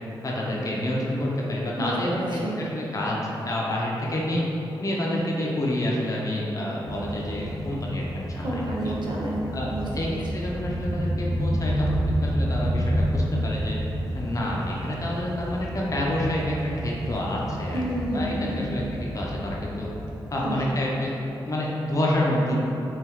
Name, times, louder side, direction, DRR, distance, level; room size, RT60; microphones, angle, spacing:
voice 1, 0.2-3.2 3.4-4.4 4.8-8.9 9.5-9.7 9.9-10.1 10.3-13.8 14.1-17.8 18.1-18.8 19.1-19.9 20.3-21.1 21.5-22.6, left 1 dB, 40° left, -4 dB, 0.7 m, -28 dB
voice 2, 1.8-2.6 8.4-10.2 17.7-18.8 20.4-20.7 22.5-22.6, right 1 dB, 60° right, -4 dB, 0.7 m, -30 dB
sound 1, 6.9-20.7, equal, 5° right, 0.3 m, -30 dB
5.5 x 2.5 x 3.1 m, 3.0 s
wide cardioid pair, 90°, 9 cm